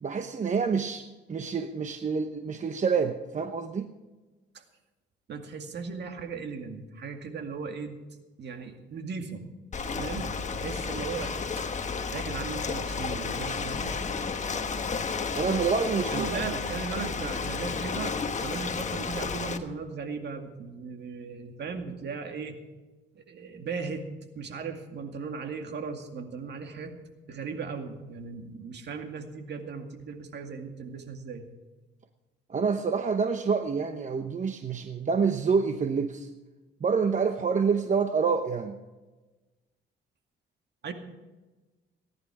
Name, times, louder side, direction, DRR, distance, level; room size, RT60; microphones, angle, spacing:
voice 1, 0.0-3.9 15.3-16.4 32.5-36.3 36.8-38.8, right 5 dB, 40° right, 7 dB, 0.9 m, -27 dB
voice 2, 5.3-8.0 8.4-9.5 10.0-11.3 12.1-14.0 16.1-22.6 23.1-24.0 24.4-26.9 27.3-31.5 40.8-40.9, right 5 dB, 60° right, 5 dB, 2.2 m, -37 dB
Ocean, 9.7-19.6, left 5 dB, 35° left, 1.3 m, -32 dB
18.0 x 11.0 x 4.9 m, 1.2 s
cardioid pair, 90°, 20 cm